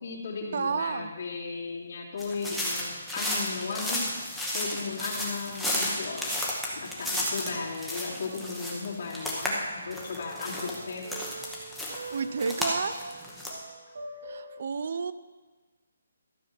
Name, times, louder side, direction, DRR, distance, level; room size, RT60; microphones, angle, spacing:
voice 1, 0.0-2.9 3.1-4.1 4.5-6.3 6.7-11.1, left 4 dB, 55° left, -9 dB, 2.5 m, -35 dB
voice 2, 0.5-1.1 12.1-13.0 14.2-15.1, right 5 dB, 45° right, 14 dB, 0.5 m, -31 dB
sound 1, 2.2-9.5 9.8-13.5, left 1 dB, ahead, 1.0 m, -33 dB
sound 2, 8.7-9.8 10.1-14.6, right 2 dB, 65° right, 1.5 m, -44 dB
12.5 x 5.6 x 7.4 m, 1.3 s
hypercardioid pair, 175°, 0 cm